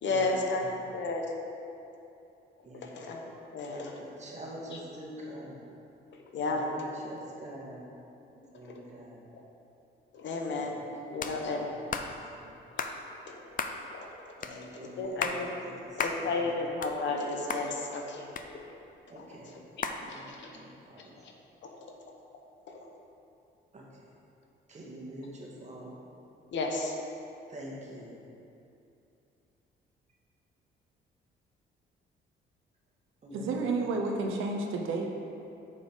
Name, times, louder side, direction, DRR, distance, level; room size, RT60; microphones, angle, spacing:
voice 1, 0.0-1.3 2.7-3.2 3.5-4.0 4.7-4.8 6.3-6.7 8.6-8.8 10.1-11.7 12.8-12.9 13.3-13.4 13.9-14.1 14.5-15.5 16.0-18.6 19.2-19.3 20.1-20.5 21.2-21.3 22.7-22.8 26.5-26.9, left 3 dB, 65° left, 1 dB, 1.0 m, -33 dB
voice 2, 3.7-5.5 6.5-6.8 7.0-7.9 8.5-9.2 12.1-12.2 14.4-15.3 19.1-19.5 20.1-20.4 20.9-21.0 23.7-23.8 24.7-25.9 27.5-28.2 33.2-33.5, right 1 dB, 35° right, -3 dB, 1.8 m, -44 dB
sound 1, 11.2-11.4 11.9-12.1 12.8-13.0 13.6-13.8 14.4-14.5 15.0-15.4 16.0-16.2 16.6-17.2 17.5-17.6 18.4-18.9 19.8-20.0, left 5 dB, 45° left, 0.6 m, -33 dB
voice 3, 33.3-35.1, right 3 dB, 85° right, 2 dB, 0.8 m, -31 dB
7.0 x 5.2 x 5.1 m, 2.7 s
cardioid pair, 90°, 20 cm